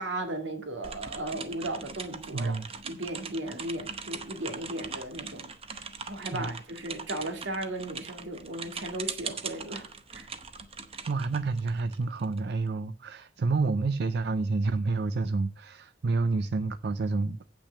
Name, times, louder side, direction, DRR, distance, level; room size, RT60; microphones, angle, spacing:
voice 1, 0.0-2.5 2.8-10.3, right 1 dB, 85° right, 2.0 m, -36 dB
sound 1, 0.8-12.4, right 5 dB, 35° right, 0.9 m, -41 dB
voice 2, 2.3-2.7 6.3-6.6 11.1-17.4, right 3 dB, 65° right, 0.5 m, -29 dB
8.3 x 6.0 x 6.7 m
head